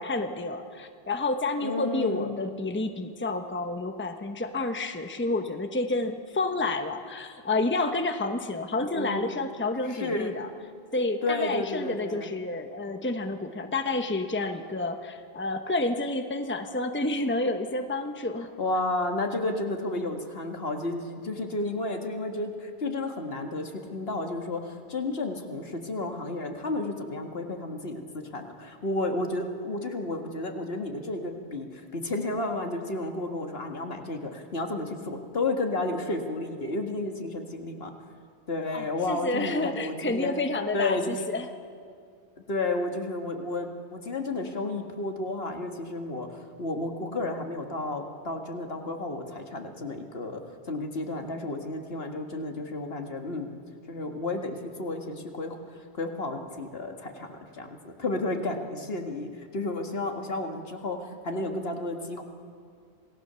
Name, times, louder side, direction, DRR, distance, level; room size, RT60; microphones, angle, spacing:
voice 1, 0.0-10.5 10.9-18.5 38.7-41.5, left 2 dB, 10° left, 7 dB, 1.0 m, -29 dB
voice 2, 1.6-2.5 8.9-9.3 9.9-10.3 11.2-12.3 18.6-37.9 38.5-40.4 40.7-41.2 42.4-53.5 53.9-55.6 55.9-62.2, left 2 dB, 65° left, 4 dB, 2.0 m, -32 dB
27.5 x 18.0 x 6.9 m, 2.3 s
omnidirectional pair, 1.1 m